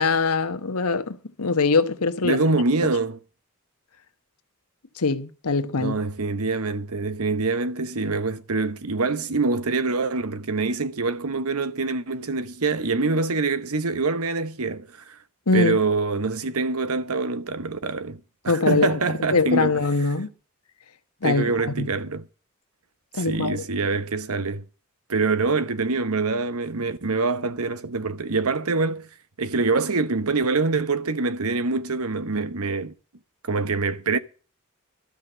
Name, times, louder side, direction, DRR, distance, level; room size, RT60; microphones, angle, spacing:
voice 1, 0.0-2.4 5.0-6.0 15.5-15.8 18.5-18.9 19.3-20.3 21.2-21.5 21.8-21.9 23.2-23.6, left 3 dB, 85° left, 1.2 m, -22 dB
voice 2, 2.2-3.2 5.8-15.2 15.5-19.8 21.2-22.3 23.2-24.6 25.1-29.1 29.4-32.9 33.4-34.2, right 3 dB, 75° right, 1.0 m, -25 dB
13.0 x 5.9 x 9.0 m
head